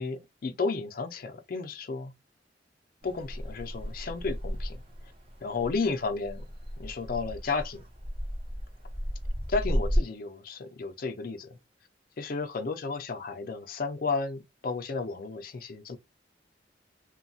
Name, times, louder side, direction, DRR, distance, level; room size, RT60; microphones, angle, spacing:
voice 1, 0.0-2.1 3.0-4.8 5.4-6.4 6.8-7.8 9.5-11.6 12.2-16.0, left 4 dB, 50° left, 0.4 m, -33 dB
sound 1, 3.0-10.0, equal, 30° right, 0.8 m, -34 dB
3.0 x 2.2 x 2.6 m
head